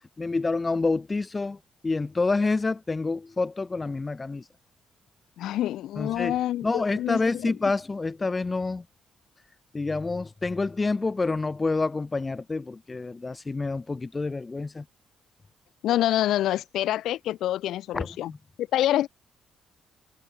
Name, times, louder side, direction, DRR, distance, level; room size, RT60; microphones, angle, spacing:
voice 1, 0.2-1.6 1.8-4.4 6.0-6.4 6.6-8.8 9.7-14.8 17.9-18.4, left 3 dB, 25° left, 6.9 m, -28 dB
voice 2, 5.4-7.5 15.8-18.3 18.7-19.1, left 13 dB, 80° left, 5.6 m, -26 dB
cardioid pair, 90°, 0 cm